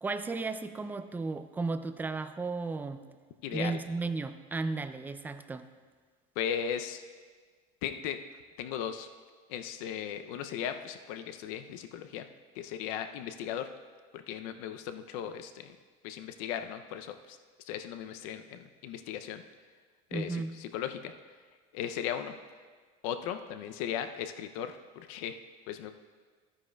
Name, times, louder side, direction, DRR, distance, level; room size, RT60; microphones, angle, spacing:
voice 1, 0.0-3.0 3.5-5.7 20.1-20.5, right 3 dB, 10° right, 10 dB, 0.3 m, -34 dB
voice 2, 3.4-3.8 6.4-7.0 7.8-8.2 8.6-9.1 9.5-12.3 12.6-13.7 14.1-15.8 16.0-17.4 17.6-19.4 20.1-21.1 21.7-22.3 23.0-25.4 25.7-25.9, left 9 dB, 90° left, 9 dB, 0.5 m, -37 dB
14.0 x 9.6 x 2.2 m, 1.5 s
cardioid pair, 140°, 17 cm